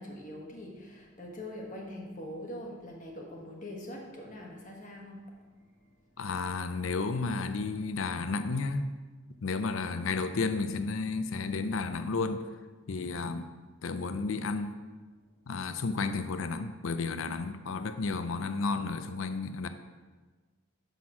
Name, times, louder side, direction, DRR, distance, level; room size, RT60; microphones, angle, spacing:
voice 1, 0.0-5.4, left 1 dB, 40° left, 0 dB, 1.4 m, -43 dB
voice 2, 6.2-8.9 9.4-12.4 12.9-13.5 13.8-14.7 15.5-19.7, left 4 dB, 70° left, 10 dB, 0.5 m, -32 dB
6.0 x 5.7 x 6.0 m, 1.4 s
head